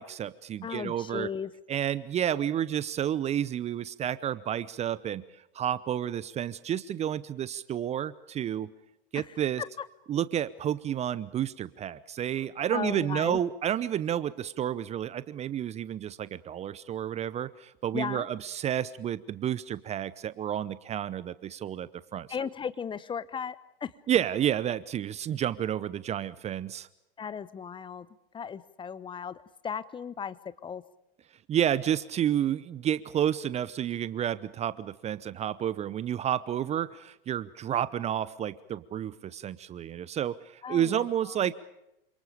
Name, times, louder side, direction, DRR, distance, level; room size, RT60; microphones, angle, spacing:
voice 1, 0.0-1.3 1.7-5.2 5.5-8.7 9.1-9.6 10.1-22.5 24.1-26.9 31.5-41.5, right 10 dB, 20° right, 18 dB, 0.8 m, -30 dB
voice 2, 0.6-1.5 9.1-9.2 12.7-13.4 17.9-18.2 22.3-23.6 23.8-23.9 27.2-28.1 28.3-30.4 30.6-30.8 40.6-41.4, left 7 dB, 15° left, 16 dB, 1.0 m, -36 dB
28.5 x 26.5 x 5.1 m, 0.87 s
figure-of-eight pair, 95°, 29 cm